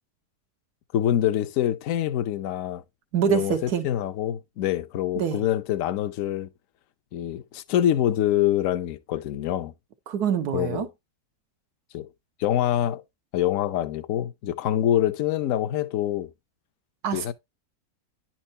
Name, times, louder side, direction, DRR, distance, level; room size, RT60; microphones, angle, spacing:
voice 1, 0.9-2.8 3.3-6.5 7.1-9.7 10.5-10.9 11.9-12.1 12.4-13.0 13.3-16.3 17.1-17.3, left 11 dB, 65° left, 1.0 m, -25 dB
voice 2, 3.1-3.9 5.2-5.4 10.1-10.9 17.0-17.3, right 7 dB, 90° right, 1.5 m, -25 dB
10.5 x 4.4 x 2.7 m
omnidirectional pair, 1.6 m